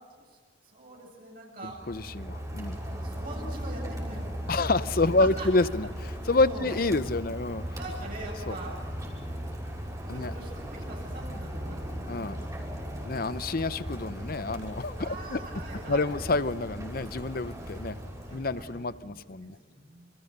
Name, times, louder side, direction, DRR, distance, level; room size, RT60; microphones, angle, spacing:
voice 1, 0.6-1.8 2.9-4.4 5.2-5.5 6.1-6.7 7.7-8.7 10.1-13.1 15.0-16.1 18.2-20.1, right 2 dB, 50° right, -3 dB, 7.9 m, -44 dB
Rain, 1.7-18.9, equal, 20° right, 5.9 m, -37 dB
voice 2, 1.9-2.8 4.5-5.9 6.2-7.6 8.5-8.6 10.1-10.3 12.1-12.4 13.0-15.4 15.9-18.0 18.3-19.6, left 3 dB, 50° left, 15 dB, 0.7 m, -28 dB
28.0 x 28.0 x 6.7 m, 1.5 s
head